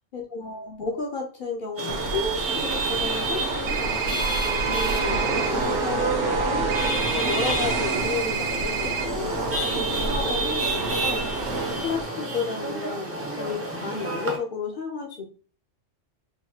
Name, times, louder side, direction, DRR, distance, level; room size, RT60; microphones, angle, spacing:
voice 1, 0.1-4.2 4.4-6.7 7.1-11.3 11.8-15.2, left 4 dB, 55° left, 0 dB, 0.6 m, -32 dB
Chatter / Vehicle horn car horn honking / Traffic noise roadway noise, 1.8-14.4, right 2 dB, 20° right, 0.4 m, -30 dB
sound 1, 1.9-12.0, right 2 dB, 65° right, 1.0 m, -29 dB
sound 2, 3.7-5.5 6.7-9.0, right 7 dB, 85° right, 1.2 m, -30 dB
3.9 x 2.5 x 2.7 m, 0.39 s
omnidirectional pair, 1.3 m